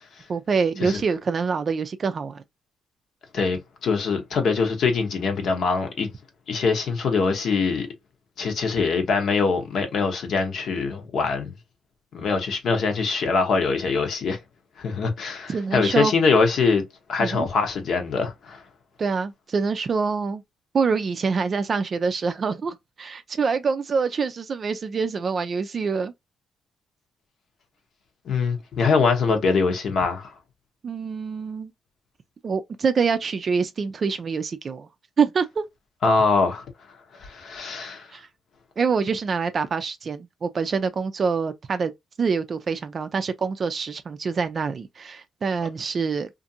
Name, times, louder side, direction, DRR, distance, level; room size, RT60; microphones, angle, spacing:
voice 1, 0.3-2.4 15.5-16.1 17.2-17.5 19.0-20.4 20.7-26.1 30.8-31.7 32.4-34.9 35.2-35.6 38.1-38.3 38.8-41.9 42.2-46.3, right 5 dB, 45° right, 0.3 m, -25 dB
voice 2, 3.3-6.1 6.5-7.9 8.4-11.5 12.1-14.4 14.8-16.8 17.1-18.6 28.3-30.3 36.0-36.6 37.2-38.1, left 4 dB, 65° left, 0.9 m, -23 dB
2.5 x 2.5 x 2.6 m
cardioid pair, 95°, 0 cm